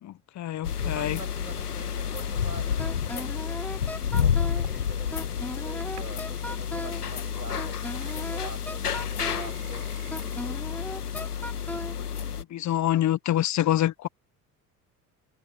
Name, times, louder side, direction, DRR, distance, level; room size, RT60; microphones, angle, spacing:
voice 1, 0.0-1.2 12.5-14.1, left 13 dB, 40° left, 1.1 m, -26 dB
sound 1, 0.6-12.4, left 7 dB, 80° left, 1.7 m, -30 dB
voice 2, 0.8-3.6 4.2-9.8 10.2-10.6, right 4 dB, 85° right, 7.1 m, -45 dB
Wind instrument woodwind instrument, 2.8-4.7 5.1-7.0 7.6-9.5 10.1-12.0, left 1 dB, 5° left, 3.6 m, -37 dB
sound 2, 3.3-3.7 4.2-5.0 5.3-6.9 7.2-7.3 7.6-8.5 8.8-10.3, right 17 dB, 70° right, 5.2 m, -51 dB
figure-of-eight pair, 60°, 45 cm